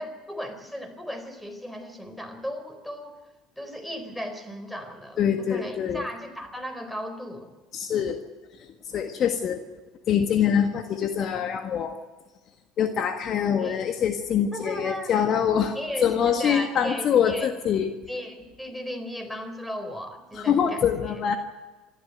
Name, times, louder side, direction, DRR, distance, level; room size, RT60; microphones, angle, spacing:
voice 1, 0.0-3.1 3.6-7.5 13.6-13.9 14.5-15.1 15.7-17.5 18.1-20.9, equal, ahead, 7 dB, 4.2 m, -36 dB
voice 2, 5.2-6.1 7.7-8.2 8.6-9.6 10.1-11.9 12.8-15.8 16.0-17.9 20.3-21.4, left 8 dB, 45° left, 6 dB, 1.6 m, -24 dB
26.0 x 12.5 x 9.3 m, 1.2 s
figure-of-eight pair, 65°, 0 cm